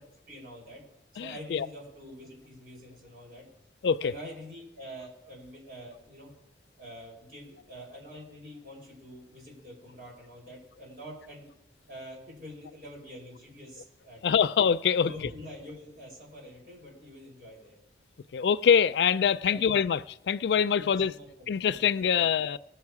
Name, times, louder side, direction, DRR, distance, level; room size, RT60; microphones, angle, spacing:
voice 1, 0.3-0.8 1.2-3.4 4.0-6.3 6.8-11.5 11.9-14.2 15.0-17.8 19.4-19.6 20.7-22.2, equal, 55° right, 4.9 m, -46 dB
voice 2, 1.2-1.7 3.8-4.1 14.2-15.1 18.3-21.1 21.5-22.6, left 7 dB, 70° left, 0.3 m, -24 dB
19.0 x 6.9 x 4.8 m
head